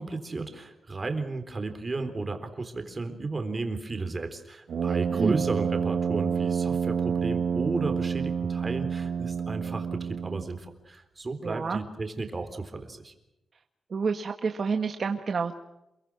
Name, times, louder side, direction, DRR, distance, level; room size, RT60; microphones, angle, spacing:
voice 1, 0.0-13.1, right 3 dB, 25° right, 7 dB, 3.8 m, -33 dB
Brass instrument, 4.7-10.6, right 6 dB, 75° right, 1.2 m, -28 dB
voice 2, 4.8-5.3 11.4-11.8 13.9-15.6, right 5 dB, 50° right, 5 dB, 1.6 m, -29 dB
28.5 x 23.0 x 6.3 m, 0.91 s
wide cardioid pair, 150°, 0 cm